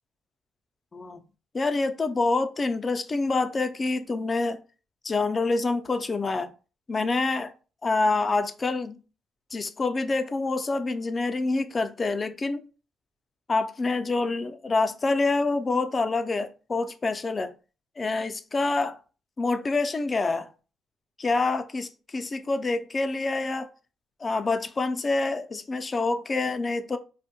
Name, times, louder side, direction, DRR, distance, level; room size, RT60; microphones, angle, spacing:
voice 1, 1.5-4.6 5.0-6.5 6.9-7.5 7.8-9.0 9.5-12.6 13.5-17.5 18.0-19.0 19.4-20.5 21.2-23.7 24.2-27.0, left 3 dB, 30° left, 0.3 m, -26 dB
2.5 x 2.1 x 2.8 m
cardioid pair, 90°, 0 cm